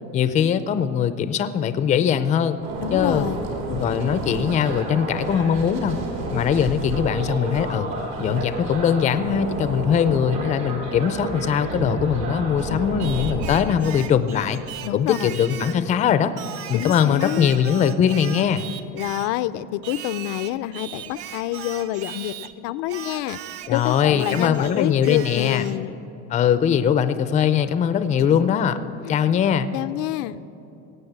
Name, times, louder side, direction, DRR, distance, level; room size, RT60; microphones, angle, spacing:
voice 1, 0.1-2.6 2.9-3.2 3.7-6.0 6.3-7.9 8.2-14.6 14.9-16.3 16.7-18.6 23.7-25.6 26.3-28.8 29.1-29.7, left 8 dB, 25° left, 12 dB, 0.4 m, -21 dB
sound 1, 2.6-13.6, right 2 dB, 70° right, 3.1 m, -30 dB
voice 2, 2.8-3.4 12.7-12.9 14.8-15.3 16.7-17.5 18.9-23.4 23.7-26.0 28.3-28.6 29.0-29.1 29.7-30.4, left 15 dB, 80° left, 13 dB, 0.5 m, -27 dB
Singing, 13.0-15.9 16.4-19.4 19.8-22.5 22.9-25.8, right 10 dB, 50° right, 0.6 m, -38 dB
17.5 x 8.0 x 8.0 m, 2.9 s
cardioid pair, 165°, 30 cm